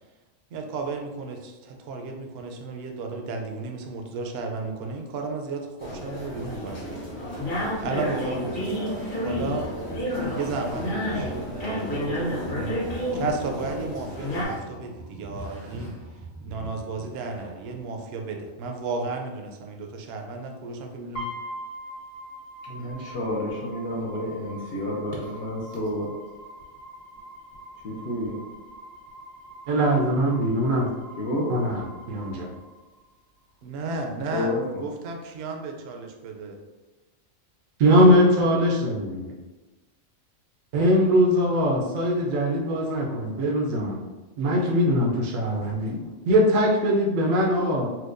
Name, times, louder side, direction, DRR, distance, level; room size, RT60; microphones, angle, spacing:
voice 1, 0.5-7.3 7.8-9.6 10.4-12.8 13.1-15.9 16.4-21.3 33.6-36.6, right 3 dB, 65° right, 3 dB, 0.7 m, -33 dB
sound 1, 5.8-14.4, equal, 40° left, 1.1 m, -30 dB
sound 2, 6.6-17.9, right 2 dB, 20° right, 0.5 m, -44 dB
sound 3, 21.1-33.2, equal, 75° left, 1.7 m, -43 dB
voice 2, 22.6-26.1 27.8-28.4 31.2-31.6 34.3-34.8, left 1 dB, 60° left, -4 dB, 0.7 m, -30 dB
voice 3, 29.7-30.9 31.5-32.5 37.8-39.3 40.7-44.0 44.4-47.9, equal, 85° right, -1 dB, 1.0 m, -21 dB
4.4 x 2.2 x 2.5 m, 1.2 s
omnidirectional pair, 1.4 m